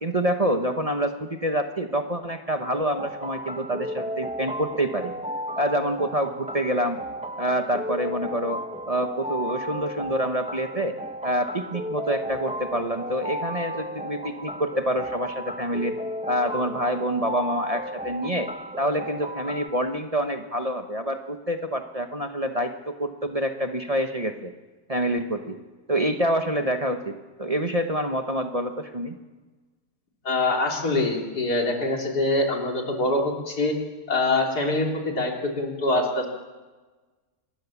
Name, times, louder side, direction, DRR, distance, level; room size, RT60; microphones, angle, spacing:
voice 1, 0.0-5.1 5.6-7.0 7.4-8.6 8.9-10.9 11.2-15.9 16.3-18.5 18.8-24.5 24.9-25.6 25.9-29.2, right 1 dB, 25° right, 5 dB, 1.1 m, -27 dB
sound 1, 2.6-19.7, equal, 5° right, 0.6 m, -34 dB
voice 2, 30.3-33.7 34.1-36.3, left 2 dB, 85° left, 1 dB, 3.8 m, -24 dB
25.5 x 20.5 x 7.2 m, 1.3 s
omnidirectional pair, 1.6 m